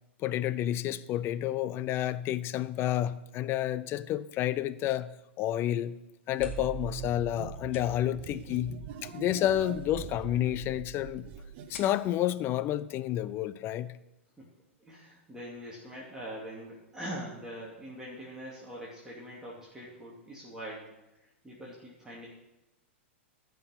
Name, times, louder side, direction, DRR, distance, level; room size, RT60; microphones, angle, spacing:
voice 1, 0.2-5.1 5.4-6.0 6.3-8.8 9.0-11.3 11.7-13.9, left 12 dB, 35° left, 0.6 m, -30 dB
sound 1, 6.1-13.6, left 5 dB, 70° left, 2.4 m, -55 dB
sound 2, 6.4-11.7, right 7 dB, 50° right, 1.1 m, -42 dB
voice 2, 14.8-20.9 21.2-22.3, equal, 10° right, 2.7 m, -43 dB
14.0 x 5.9 x 5.8 m
hypercardioid pair, 110°, 7 cm